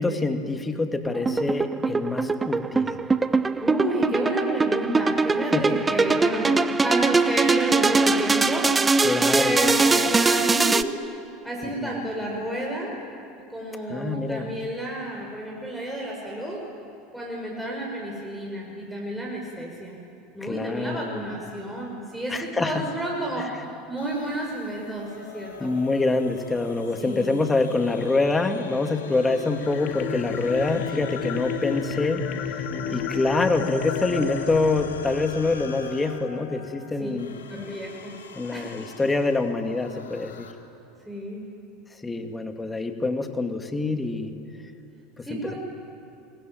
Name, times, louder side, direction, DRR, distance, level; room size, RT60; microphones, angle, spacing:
voice 1, 0.0-2.9 5.5-5.8 9.0-9.6 11.6-11.9 13.9-14.5 20.4-21.2 22.3-22.9 23.4-23.5 25.6-32.6 32.9-37.3 38.3-40.5 42.0-44.3 45.2-45.5, left 3 dB, 15° left, 6 dB, 2.4 m, -26 dB
sound 1, 1.0-10.8, right 4 dB, 15° right, 1.0 m, -22 dB
voice 2, 3.6-6.5 6.8-8.7 9.4-10.9 11.4-12.9 13.5-16.6 17.1-20.0 20.3-23.5 23.9-25.7 27.0-27.4 32.7-33.1 37.0-37.2 37.5-38.1 38.5-38.8 41.1-41.4 45.3-45.6, right 1 dB, ahead, -3 dB, 5.8 m, -30 dB
sound 2, 24.0-40.5, left 7 dB, 75° left, 2.8 m, -41 dB
sound 3, 29.5-35.7, left 6 dB, 50° left, 2.5 m, -32 dB
25.0 x 22.5 x 9.4 m, 2.9 s
figure-of-eight pair, 75°, 0 cm